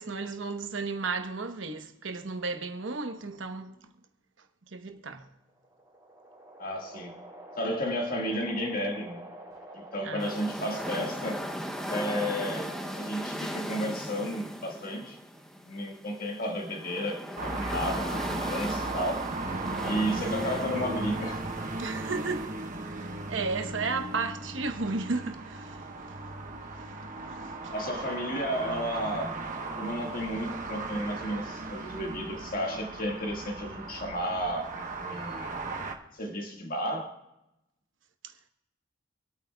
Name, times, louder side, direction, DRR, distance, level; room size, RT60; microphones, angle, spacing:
voice 1, 0.0-3.9 4.7-5.3 10.0-10.4 21.8-22.5 22.8-26.2 27.4-27.7 38.2-38.3, right 4 dB, 65° right, 1.0 m, -34 dB
sound 1, 5.3-13.6, right 1 dB, 15° right, 2.4 m, -48 dB
voice 2, 6.6-7.1 7.6-9.2 9.7-11.5 11.9-15.2 15.6-19.3 19.8-21.4 27.7-29.4 29.8-35.6 36.1-37.1, equal, 45° left, 1.7 m, -33 dB
sound 2, 10.2-22.4, equal, ahead, 0.7 m, -38 dB
sound 3, 17.4-36.0, right 2 dB, 40° right, 1.1 m, -36 dB
26.5 x 8.9 x 2.3 m
head